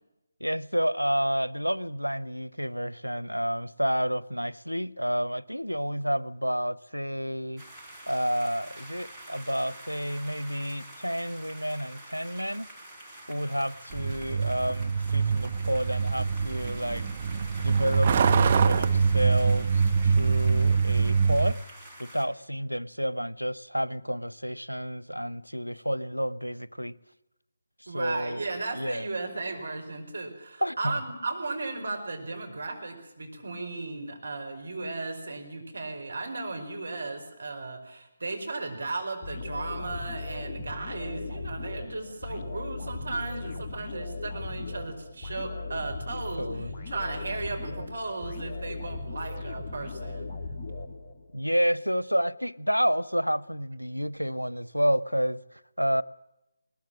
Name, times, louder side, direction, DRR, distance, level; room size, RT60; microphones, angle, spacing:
voice 1, 0.4-7.6 8.1-12.7 13.3-17.1 17.6-21.6 22.0-26.9 27.8-28.4 28.7-29.1 30.6-31.0 46.4-46.7 51.3-56.0, equal, 90° left, 0.7 m, -30 dB
sound 1, 7.6-22.3, right 1 dB, 5° right, 3.5 m, -47 dB
Truck, 13.9-21.5, right 5 dB, 30° right, 1.0 m, -24 dB
voice 2, 27.9-50.3, right 3 dB, 60° right, 5.0 m, -35 dB
sound 2, 39.2-51.4, left 3 dB, 20° left, 1.8 m, -37 dB
20.5 x 20.0 x 7.5 m
figure-of-eight pair, 150°, 0 cm